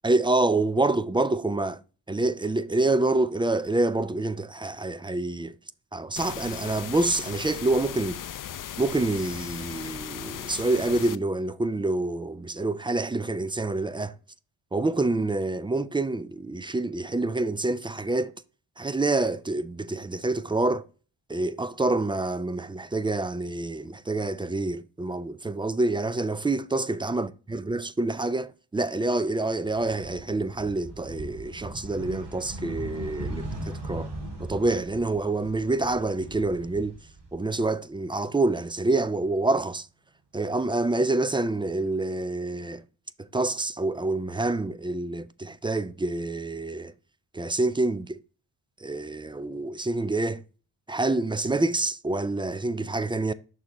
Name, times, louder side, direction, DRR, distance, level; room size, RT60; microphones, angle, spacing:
voice 1, 0.0-1.8 2.1-5.6 5.9-8.2 8.8-14.2 14.7-18.4 18.8-20.9 21.3-34.1 34.4-37.0 37.3-39.9 40.3-42.8 43.2-46.9 47.3-48.2 48.8-50.4 50.9-53.3, right 2 dB, 10° right, 0.3 m, -27 dB
sound 1, 6.2-11.2, left 10 dB, 45° left, 0.5 m, -37 dB
sound 2, 29.7-37.8 38.1-39.3, right 1 dB, 60° right, 2.3 m, -39 dB
6.3 x 3.7 x 4.1 m
cardioid pair, 55°, 47 cm